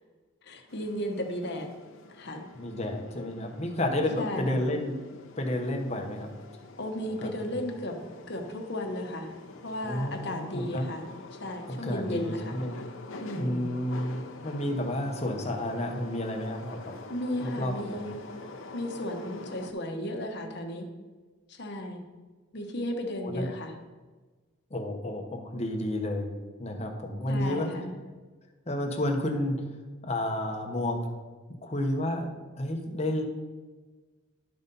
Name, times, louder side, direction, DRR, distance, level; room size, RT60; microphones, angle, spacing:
voice 1, 0.4-1.7 2.1-2.4 4.2-4.6 6.8-8.0 8.3-9.3 9.6-11.1 11.4-12.6 13.2-13.7 17.1-18.3 18.7-20.9 21.5-22.0 22.5-23.7 27.3-27.9, left 1 dB, 55° left, 3 dB, 1.1 m, -34 dB
sound 1, 0.7-19.7, left 3 dB, 75° left, 0.8 m, -46 dB
voice 2, 2.5-5.0 5.4-6.3 7.2-7.6 9.8-10.9 11.7-12.8 13.3-17.0 17.4-18.0 23.2-23.4 24.7-26.3 26.6-27.7 28.7-29.6 30.0-31.0 31.6-32.3 32.6-33.2, left 1 dB, 30° left, 3 dB, 1.0 m, -31 dB
12.0 x 4.1 x 5.4 m, 1.3 s
head